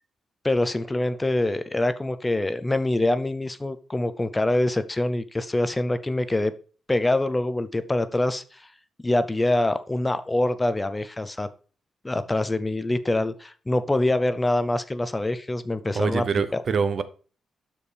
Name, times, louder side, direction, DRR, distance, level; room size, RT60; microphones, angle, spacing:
voice 1, 0.4-6.5 6.9-8.7 9.0-11.5 12.0-16.6, left 1 dB, 15° left, 0.5 m, -25 dB
voice 2, 15.9-17.0, right 5 dB, 50° right, 0.6 m, -25 dB
12.0 x 4.4 x 3.3 m
cardioid pair, 110°, 0 cm